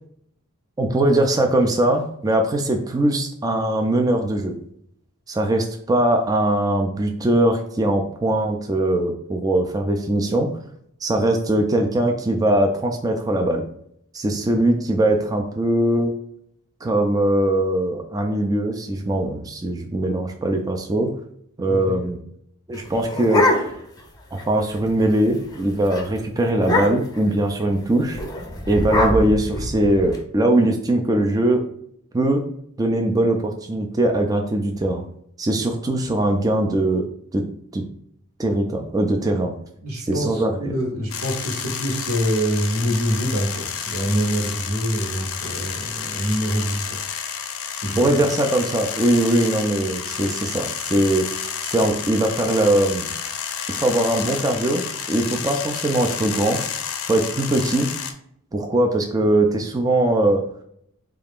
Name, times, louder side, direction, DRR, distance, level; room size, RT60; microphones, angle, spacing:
voice 1, 0.8-4.5 5.3-10.5 11.0-13.6 14.1-16.1 16.8-21.1 21.6-22.2 22.7-23.7 24.3-28.2 28.7-31.6 32.1-32.4 32.8-35.0 35.4-37.0 37.3-37.4 37.7-37.8 38.4-39.5 40.0-40.7 48.0-53.1 53.7-56.6 57.1-57.9 58.5-60.4, right 1 dB, 15° right, 2 dB, 0.3 m, -21 dB
voice 2, 21.7-22.0 39.8-47.0 47.7-48.0, equal, 75° right, -1 dB, 0.9 m, -25 dB
sound 1, 22.7-24.0 24.4-24.5 24.7-25.1 25.4-25.6 25.9-26.0 26.6-27.2 28.1-30.2, left 1 dB, 15° left, 0.6 m, -23 dB
sound 2, 41.1-58.1, left 7 dB, 65° left, 0.5 m, -30 dB
3.7 x 2.4 x 3.5 m, 0.70 s
head